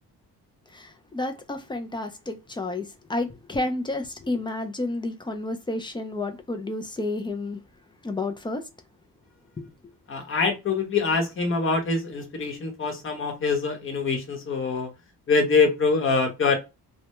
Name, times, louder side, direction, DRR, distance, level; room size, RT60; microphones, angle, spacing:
voice 1, 0.7-7.6 8.0-8.6 9.6-9.7, left 2 dB, 15° left, 0.3 m, -31 dB
voice 2, 10.1-14.9 15.3-16.6, left 4 dB, 30° left, 0.8 m, -24 dB
2.2 x 2.0 x 2.9 m
cardioid pair, 105°, 40 cm